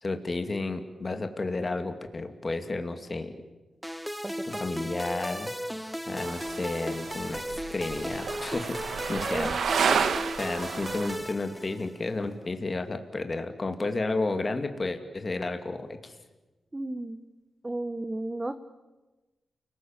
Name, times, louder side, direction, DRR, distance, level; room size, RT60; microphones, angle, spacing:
voice 1, 0.0-3.3 4.6-5.5 6.1-8.8 9.1-9.5 10.4-16.2, left 3 dB, 35° left, 6 dB, 2.6 m, -32 dB
sound 1, 3.8-12.1, equal, ahead, 1.2 m, -36 dB
voice 2, 4.2-4.6 9.1-9.5 16.7-17.2 17.6-18.5, right 2 dB, 20° right, 8 dB, 1.3 m, -34 dB
sound 2, 6.2-11.2, right 6 dB, 80° right, 1.6 m, -31 dB
29.5 x 20.0 x 9.1 m, 1.2 s
cardioid pair, 65°, 0 cm